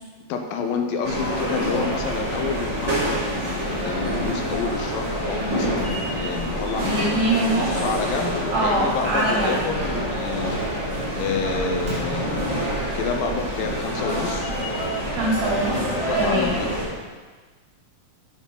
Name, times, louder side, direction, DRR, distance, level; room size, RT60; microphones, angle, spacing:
voice 1, 0.3-10.6 11.2-14.6 16.1-16.7, left 5 dB, 85° left, 4 dB, 2.6 m, -29 dB
sound 1, 1.0-16.9, right 1 dB, 35° right, 1.2 m, -27 dB
voice 2, 6.8-7.7 8.5-9.6 15.2-15.8 16.2-16.5, right 1 dB, 65° right, -7 dB, 4.4 m, -23 dB
8.2 x 7.7 x 3.8 m, 1.4 s
omnidirectional pair, 4.0 m